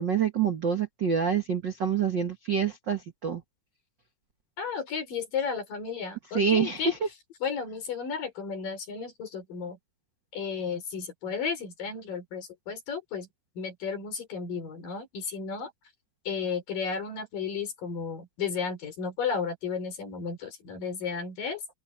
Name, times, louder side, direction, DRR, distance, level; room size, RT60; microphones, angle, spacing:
voice 1, 0.0-3.4 6.3-7.0, right 6 dB, 80° right, 1.0 m, -26 dB
voice 2, 4.6-6.9 7.4-9.8 10.3-13.3 13.6-15.7 16.3-21.6, left 6 dB, 60° left, 6.1 m, -33 dB
open air
omnidirectional pair, 4.5 m